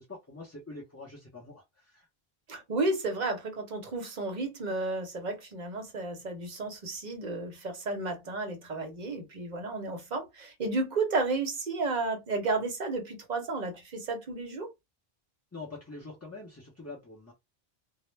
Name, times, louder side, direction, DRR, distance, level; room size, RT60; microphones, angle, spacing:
voice 1, 0.0-2.1 15.5-17.3, left 3 dB, 20° left, 0.5 m, -45 dB
voice 2, 2.5-14.7, right 3 dB, 50° right, 0.7 m, -32 dB
2.1 x 2.0 x 3.1 m
omnidirectional pair, 1.0 m